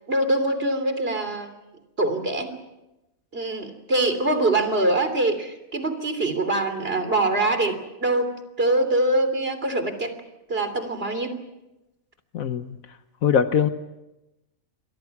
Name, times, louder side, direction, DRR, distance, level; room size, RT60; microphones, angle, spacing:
voice 1, 0.1-1.5 2.0-2.5 3.3-8.3 8.6-10.1 10.5-11.3, right 2 dB, 45° right, 8 dB, 3.5 m, -23 dB
voice 2, 12.3-12.8 13.2-13.7, left 7 dB, 80° left, 9 dB, 1.5 m, -21 dB
29.0 x 24.5 x 6.0 m, 0.98 s
omnidirectional pair, 1.4 m